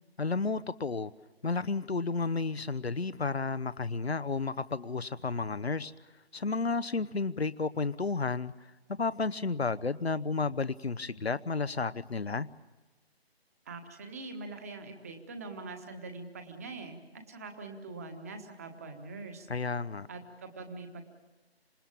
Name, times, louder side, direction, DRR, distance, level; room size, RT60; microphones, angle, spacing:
voice 1, 0.2-1.1 1.4-5.9 6.3-8.5 9.0-12.5 19.5-20.1, left 4 dB, 75° left, 15 dB, 0.9 m, -32 dB
voice 2, 13.6-19.5 20.1-21.1, right 3 dB, 15° right, 5 dB, 1.3 m, -43 dB
27.0 x 19.5 x 8.7 m, 1.2 s
figure-of-eight pair, 155°, 32 cm